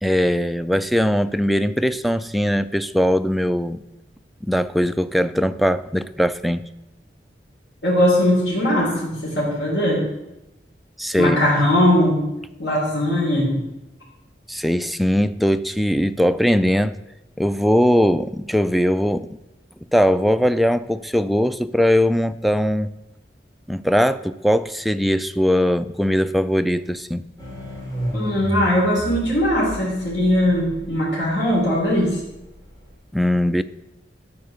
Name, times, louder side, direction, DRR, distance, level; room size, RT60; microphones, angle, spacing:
voice 1, 0.0-3.8 4.4-6.7 11.0-11.5 14.5-16.9 17.4-19.4 19.9-22.9 23.7-27.3 33.1-33.6, equal, ahead, 10 dB, 0.3 m, -20 dB
voice 2, 7.8-10.0 11.2-12.2 12.6-13.6 28.1-32.2, left 1 dB, 85° left, -5 dB, 3.7 m, -20 dB
sound 1, 27.4-32.9, equal, 20° left, 3.3 m, -33 dB
12.0 x 4.7 x 6.9 m, 0.94 s
head